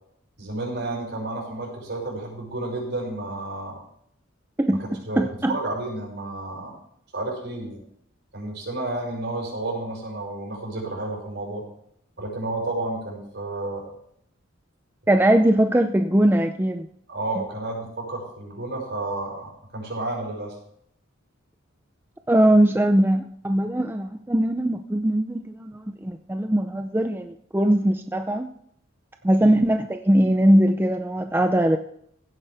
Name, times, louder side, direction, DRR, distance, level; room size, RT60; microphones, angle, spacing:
voice 1, 0.4-3.8 5.1-5.2 5.5-6.7 7.1-7.8 8.3-11.6 12.2-13.9 17.1-20.6 29.4-29.5, right 2 dB, 55° right, -1 dB, 6.1 m, -31 dB
voice 2, 4.6-5.6 15.1-16.9 22.3-28.5 29.2-31.8, right 1 dB, 10° right, 6 dB, 0.5 m, -21 dB
16.5 x 9.8 x 3.4 m, 0.70 s
head